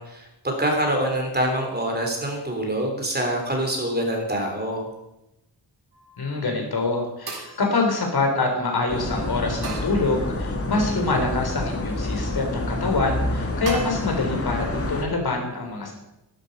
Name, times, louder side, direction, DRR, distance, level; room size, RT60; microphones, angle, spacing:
voice 1, 0.0-4.9, right 1 dB, 25° right, 1 dB, 3.5 m, -25 dB
sound 1, 5.9-6.4 7.3-8.6 9.6-10.7 11.3-11.9 13.7-13.9, right 3 dB, 65° right, 4.0 m, -39 dB
voice 2, 6.2-15.9, left 3 dB, 65° left, 2 dB, 4.0 m, -25 dB
sound 2, 8.9-15.0, left 2 dB, 35° left, 2.0 m, -28 dB
14.5 x 12.5 x 5.4 m, 0.90 s
wide cardioid pair, 155°, 41 cm